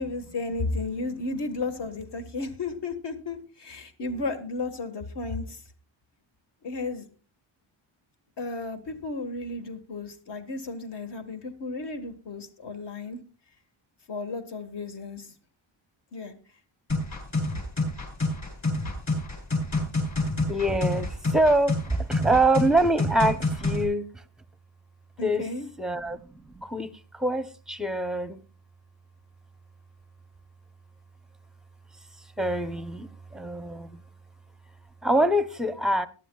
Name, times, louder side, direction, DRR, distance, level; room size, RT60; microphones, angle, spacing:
voice 1, 0.0-5.6 6.6-7.1 8.4-13.2 14.1-15.3 16.1-16.3 25.2-25.7, left 3 dB, 60° left, 1.6 m, -33 dB
sound 1, 16.9-23.8, left 2 dB, 35° left, 7.8 m, -28 dB
voice 2, 20.5-24.2 25.2-25.5 25.8-28.4 32.4-34.0 35.0-36.1, right 1 dB, ahead, 0.6 m, -25 dB
20.5 x 12.0 x 2.3 m
wide cardioid pair, 160°, 47 cm